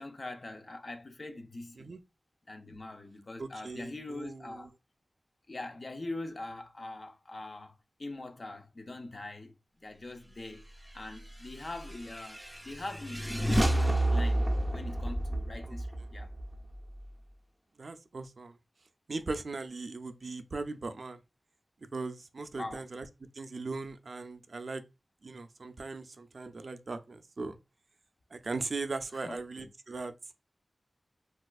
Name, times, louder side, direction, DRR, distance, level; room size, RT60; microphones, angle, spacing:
voice 1, 0.0-2.0 2.5-4.7 5.5-9.5 9.8-10.6 10.9-14.4 14.7-16.3 22.6-22.8 29.2-29.7, left 2 dB, 60° left, 0.5 m, -43 dB
voice 2, 3.4-4.7 15.7-15.8 17.8-18.6 19.1-21.2 21.9-23.1 23.3-24.8 25.2-27.6 28.3-30.1, right 3 dB, 70° right, 0.4 m, -39 dB
sound 1, 11.5-17.1, right 1 dB, 5° right, 0.4 m, -30 dB
4.1 x 2.4 x 2.3 m
wide cardioid pair, 55°, 0 cm